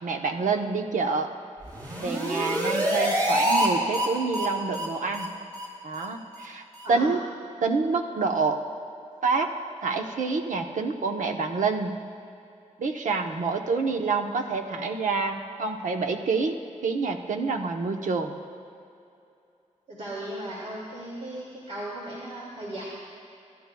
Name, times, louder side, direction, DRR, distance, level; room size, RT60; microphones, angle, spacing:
voice 1, 0.0-1.3 2.0-5.3 5.8-6.6 6.9-7.2 7.6-8.6 9.2-9.5 9.8-12.0 12.8-16.6 16.8-18.3, right 4 dB, 80° right, 4 dB, 0.9 m, -27 dB
sound 1, 1.6-3.7 3.9-4.1 4.3-4.5 4.7-4.9 5.1-5.3 5.5-5.7 5.9-6.0 6.3-6.4 6.7-6.8, equal, 30° right, 3.6 m, -26 dB
voice 2, 6.8-7.2 19.9-22.8, right 1 dB, 60° right, -6 dB, 2.2 m, -36 dB
27.5 x 12.0 x 2.3 m, 2.6 s
wide cardioid pair, 105°, 13 cm